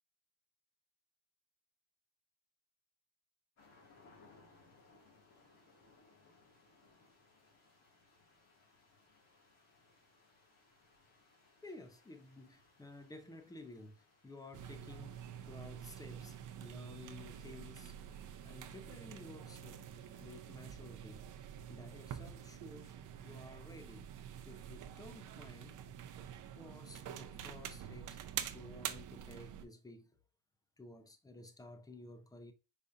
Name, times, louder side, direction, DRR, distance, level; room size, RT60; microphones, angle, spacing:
sound 1, 3.6-20.8, left 3 dB, 40° left, 2.3 m, -68 dB
voice 1, 11.6-18.0 18.4-19.9 20.2-23.0 23.2-24.1 24.5-25.8 26.6-28.2 28.5-30.2 30.8-32.5, left 2 dB, 10° left, 0.5 m, -53 dB
sound 2, 14.5-29.7, right 9 dB, 50° right, 0.6 m, -47 dB
5.0 x 4.1 x 2.6 m
cardioid pair, 175°, 41 cm